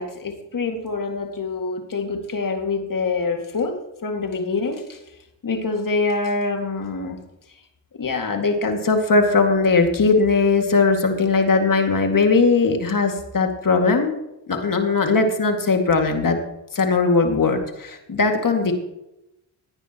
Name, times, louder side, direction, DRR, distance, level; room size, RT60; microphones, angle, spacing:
voice 1, 0.0-5.0 5.4-7.2 8.0-14.1 14.5-16.4 16.7-18.7, left 4 dB, 40° left, 4 dB, 2.2 m, -21 dB
17.0 x 9.9 x 3.0 m, 0.88 s
supercardioid pair, 60°, 48 cm